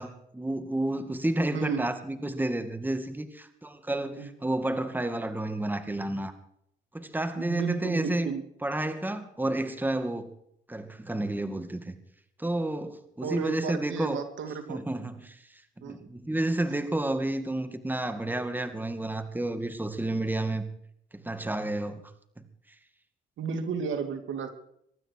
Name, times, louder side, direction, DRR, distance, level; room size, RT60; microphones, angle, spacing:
voice 1, 0.0-6.3 6.9-8.3 8.6-10.3 10.7-12.0 12.4-14.2 14.7-15.4 15.8-20.7 21.1-22.0 22.4-22.5, right 1 dB, 10° right, 9 dB, 2.3 m, -30 dB
voice 2, 1.5-1.9 4.2-4.3 7.4-8.4 13.2-14.8 15.8-16.1 23.4-24.5, right 5 dB, 75° right, 7 dB, 2.8 m, -33 dB
24.0 x 12.5 x 4.8 m, 0.72 s
cardioid pair, 90°, 20 cm